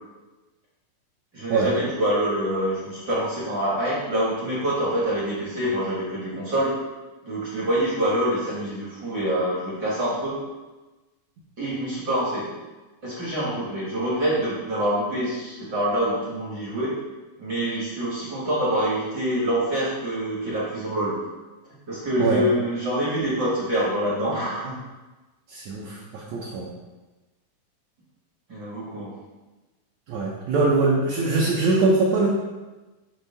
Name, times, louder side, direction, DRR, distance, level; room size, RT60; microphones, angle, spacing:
voice 1, 1.3-6.7 7.2-10.4 11.6-12.5 13.0-16.9 17.4-21.2 21.9-24.8 28.5-29.2, right 1 dB, 55° right, -6 dB, 1.2 m, -26 dB
voice 2, 25.5-26.7 30.1-32.3, right 3 dB, 75° right, -4 dB, 1.7 m, -22 dB
6.4 x 3.3 x 5.4 m, 1.2 s
omnidirectional pair, 4.1 m